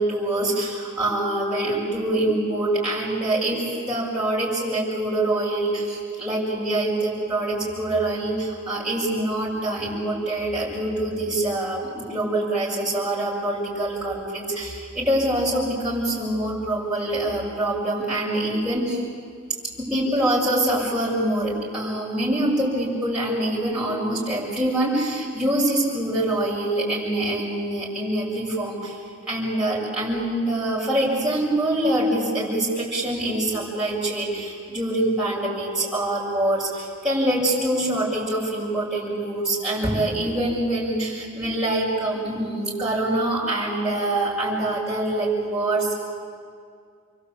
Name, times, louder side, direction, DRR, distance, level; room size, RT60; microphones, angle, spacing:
voice 1, 0.0-19.1 19.8-29.0 29.3-45.9, right 1 dB, 5° right, -8 dB, 7.5 m, -25 dB
28.0 x 24.0 x 8.7 m, 2.1 s
head